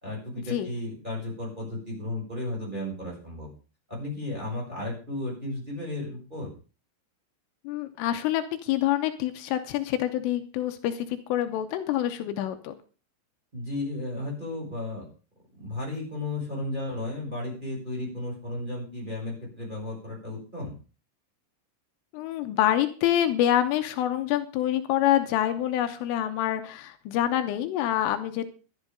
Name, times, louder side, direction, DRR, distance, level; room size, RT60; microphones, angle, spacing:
voice 1, 0.0-3.5 3.9-6.5 13.5-15.1 15.5-20.8, left 2 dB, 10° right, -3 dB, 5.4 m, -34 dB
voice 2, 7.7-12.8 22.1-28.5, left 12 dB, 85° left, 8 dB, 3.4 m, -26 dB
12.0 x 11.0 x 5.2 m, 0.36 s
omnidirectional pair, 5.9 m